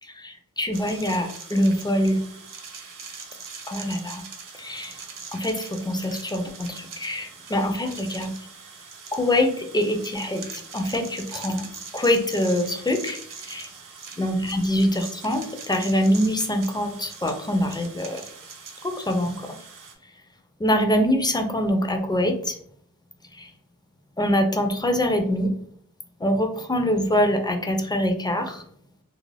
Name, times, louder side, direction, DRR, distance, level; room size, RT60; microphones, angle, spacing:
voice 1, 0.0-2.2 3.7-4.2 4.6-5.0 5.3-8.3 9.1-11.6 11.9-13.2 13.4-13.7 14.2-18.2 18.8-19.5 20.6-22.6 23.3-23.5 24.2-25.5 26.2-28.6, left 1 dB, 15° left, 4 dB, 0.4 m, -24 dB
sound 1, 0.7-19.9, right 5 dB, 70° right, 0.5 m, -42 dB
2.4 x 2.1 x 3.2 m, 0.63 s
wide cardioid pair, 75°, 34 cm